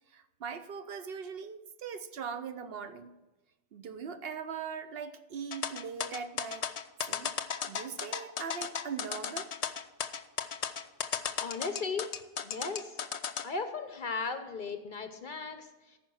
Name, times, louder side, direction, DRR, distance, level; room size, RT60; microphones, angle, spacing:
voice 1, 0.1-3.1 3.7-6.7 7.1-7.3 7.7-9.5, right 6 dB, 55° right, 11 dB, 0.8 m, -40 dB
sound 1, 5.5-13.4, left 7 dB, 85° left, 0.3 m, -35 dB
voice 2, 11.4-12.1 12.4-13.0 13.4-16.0, left 4 dB, 50° left, 8 dB, 0.7 m, -36 dB
14.0 x 5.3 x 6.2 m, 1.1 s
omnidirectional pair, 1.3 m